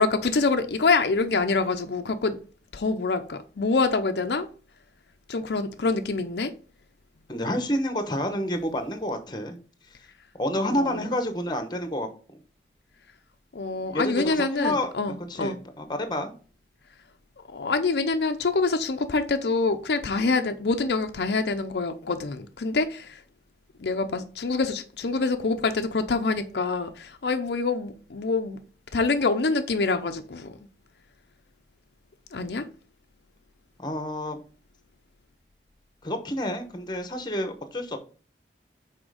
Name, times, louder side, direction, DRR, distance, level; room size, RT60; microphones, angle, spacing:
voice 1, 0.0-2.4 2.7-4.5 5.3-6.5 10.6-11.1 13.5-15.6 17.5-23.2 23.8-28.6 28.9-30.6 32.3-32.7, left 3 dB, 70° left, 0.6 m, -26 dB
voice 2, 7.3-9.6 10.4-12.1 13.9-16.3 33.8-34.4 36.0-38.0, left 1 dB, 25° left, 0.9 m, -29 dB
6.2 x 4.4 x 4.8 m
head